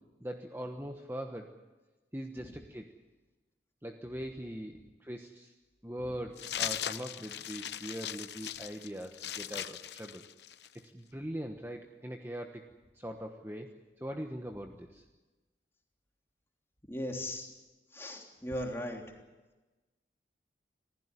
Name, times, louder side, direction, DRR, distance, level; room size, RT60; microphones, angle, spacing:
voice 1, 0.2-1.5 2.1-2.9 3.8-5.5 5.8-10.2 10.7-12.7 12.9-13.7 14.0-15.0, equal, 15° right, 3 dB, 1.2 m, -41 dB
sound 1, 6.4-10.8, left 10 dB, 75° left, 0.8 m, -39 dB
voice 2, 16.9-17.5 17.9-19.2, left 1 dB, 15° left, 1 dB, 3.3 m, -38 dB
26.5 x 15.5 x 9.8 m, 1.2 s
head